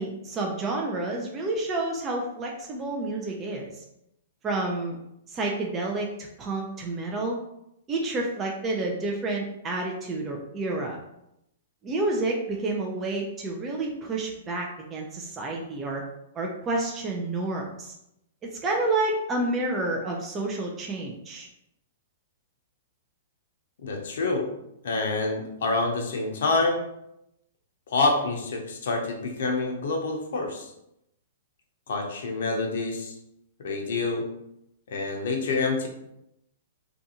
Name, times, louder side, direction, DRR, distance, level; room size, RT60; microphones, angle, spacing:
voice 1, 0.0-3.7 4.4-5.0 5.3-7.4 7.9-11.0 11.8-16.0 16.4-17.9 18.4-21.5, right 2 dB, 25° right, 0 dB, 0.4 m, -29 dB
voice 2, 23.8-24.5 24.8-26.9 27.9-30.7 31.9-33.1 33.6-34.3 34.9-35.9, left 3 dB, 70° left, 2 dB, 0.6 m, -27 dB
2.5 x 2.3 x 2.8 m, 0.81 s
hypercardioid pair, 120°, 0 cm